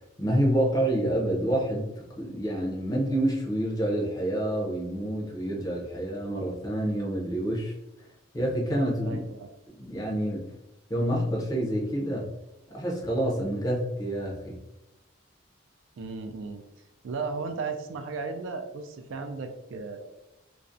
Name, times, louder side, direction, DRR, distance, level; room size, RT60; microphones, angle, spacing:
voice 1, 0.2-7.7 8.3-9.2 9.8-10.5 10.9-12.3 12.7-14.6, right 1 dB, 20° left, -2 dB, 0.5 m, -28 dB
voice 2, 9.0-9.5 16.0-16.6 17.0-20.1, right 4 dB, 70° right, 6 dB, 0.3 m, -35 dB
2.4 x 2.0 x 2.5 m, 0.95 s
head